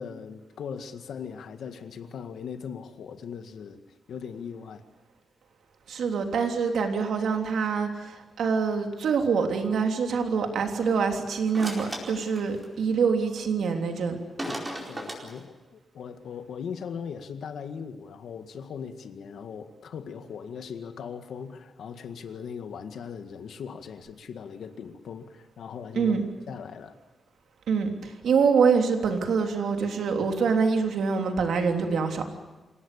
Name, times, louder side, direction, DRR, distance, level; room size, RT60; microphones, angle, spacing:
voice 1, 0.0-3.8 4.1-4.8 12.0-12.2 14.4-26.1 26.5-26.9, left 7 dB, 85° left, 8 dB, 1.9 m, -39 dB
voice 2, 5.9-14.2 25.9-26.2 27.7-32.3, right 5 dB, 80° right, 4 dB, 3.2 m, -25 dB
sound 1, 11.5-12.7 14.4-15.4, right 1 dB, 15° right, 4.6 m, -36 dB
27.0 x 17.5 x 8.5 m, 1.2 s
wide cardioid pair, 180°, 0 cm